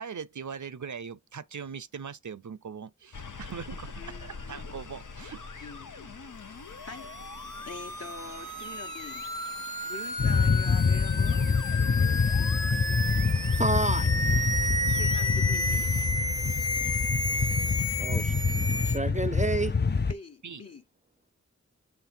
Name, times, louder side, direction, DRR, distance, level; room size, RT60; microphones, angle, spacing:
voice 1, 0.0-3.9 4.2-5.7 20.4-20.6, right 6 dB, 70° right, 0.6 m, -40 dB
sound 1, 3.1-16.1, left 4 dB, 85° left, 0.8 m, -46 dB
voice 2, 4.0-4.9 5.6-6.2 6.8-7.2 7.6-9.3 9.8-11.5 14.8-15.9 20.1-20.8, left 3 dB, 55° left, 1.2 m, -45 dB
sound 2, 6.7-19.0, left 1 dB, 15° left, 0.8 m, -32 dB
sound 3, 10.2-20.1, left 5 dB, 35° left, 0.5 m, -26 dB
voice 3, 12.6-14.1 18.0-18.3 18.8-19.8, right 2 dB, 25° right, 0.4 m, -30 dB
7.2 x 3.3 x 4.4 m
wide cardioid pair, 45°, 30 cm